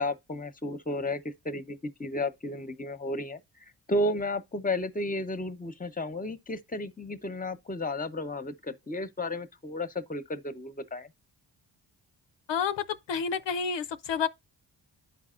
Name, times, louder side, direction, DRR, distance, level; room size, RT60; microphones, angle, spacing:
voice 1, 0.0-3.4 3.9-11.1, left 1 dB, 20° left, 0.9 m, -33 dB
voice 2, 12.5-14.3, left 6 dB, 70° left, 0.6 m, -29 dB
11.5 x 4.1 x 2.4 m
cardioid pair, 55°, 45 cm